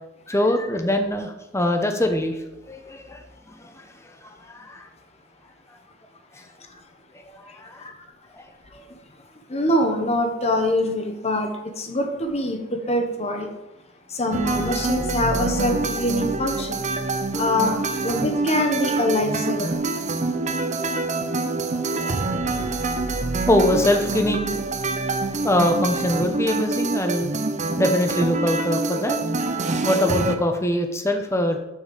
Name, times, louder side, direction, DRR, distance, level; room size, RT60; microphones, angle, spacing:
voice 1, 0.3-3.2 3.5-3.9 4.2-4.9 7.3-7.8 8.3-8.8 17.3-17.5 21.7-22.1 23.5-24.6 25.4-27.3 27.8-29.2 29.8-31.6, left 1 dB, 15° left, 5 dB, 0.9 m, -23 dB
voice 2, 9.5-13.5 14.1-16.8 17.4-19.8, left 1 dB, 35° left, 4 dB, 1.2 m, -24 dB
sound 1, 14.3-30.4, right 3 dB, 35° right, 0.6 m, -26 dB
6.5 x 5.4 x 6.8 m, 0.95 s
head